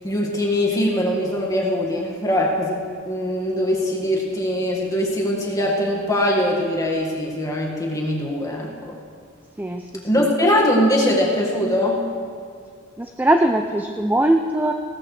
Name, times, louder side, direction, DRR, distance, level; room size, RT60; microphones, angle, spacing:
voice 1, 0.0-9.0 10.0-12.0, left 1 dB, 15° left, -2 dB, 1.8 m, -22 dB
voice 2, 13.0-14.7, right 1 dB, 10° right, 5 dB, 0.4 m, -20 dB
17.0 x 13.0 x 3.3 m, 2.2 s
head